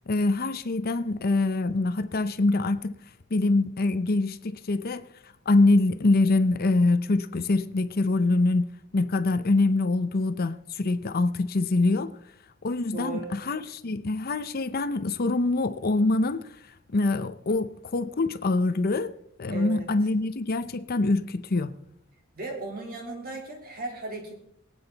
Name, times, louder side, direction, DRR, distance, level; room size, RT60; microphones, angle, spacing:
voice 1, 0.1-3.0 3.3-5.1 5.5-8.7 8.9-12.1 12.6-16.5 16.9-19.1 19.4-21.8, left 2 dB, 50° left, 0.7 m, -24 dB
voice 2, 12.9-13.4 19.5-19.9 22.3-24.3, right 3 dB, 45° right, 3.6 m, -36 dB
23.0 x 8.9 x 4.0 m
head